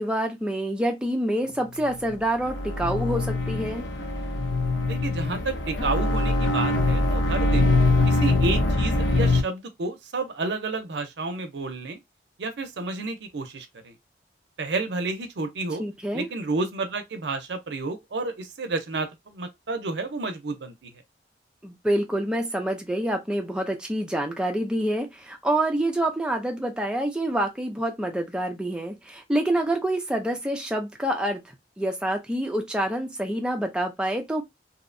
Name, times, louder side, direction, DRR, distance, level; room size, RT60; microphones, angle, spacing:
voice 1, 0.0-3.9 15.8-16.3 21.6-31.4 31.8-34.4, right 1 dB, 5° right, 0.4 m, -27 dB
sound 1, 2.0-9.4, left 2 dB, 80° left, 0.6 m, -23 dB
voice 2, 4.9-7.7 8.1-12.0 12.4-13.9 14.6-15.8 16.1-20.9, right 3 dB, 70° right, 0.5 m, -31 dB
2.7 x 2.1 x 2.5 m
head